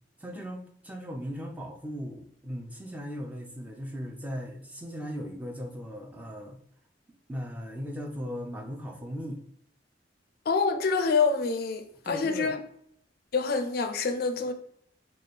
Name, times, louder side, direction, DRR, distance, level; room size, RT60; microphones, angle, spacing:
voice 1, 0.2-6.6 7.3-9.4 12.0-12.5, equal, 10° right, 0.4 m, -38 dB
voice 2, 10.5-12.6 13.3-14.5, left 4 dB, 50° left, 0.4 m, -26 dB
3.2 x 2.3 x 4.0 m
head